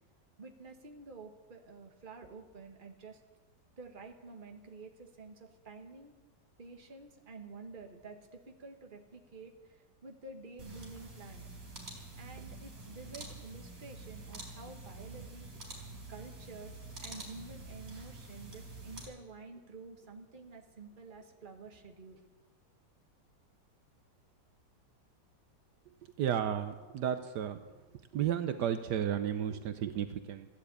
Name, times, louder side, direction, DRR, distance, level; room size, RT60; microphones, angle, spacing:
voice 1, 0.4-3.2 3.8-6.1 6.6-11.4 12.2-15.5 16.1-22.2, right 3 dB, 30° right, 3 dB, 1.5 m, -50 dB
sound 1, 10.6-19.0, right 2 dB, 50° right, 4.2 m, -47 dB
voice 2, 26.2-27.6 28.1-30.5, right 9 dB, 75° right, 9 dB, 1.3 m, -33 dB
15.0 x 10.5 x 8.3 m, 1.3 s
omnidirectional pair, 1.9 m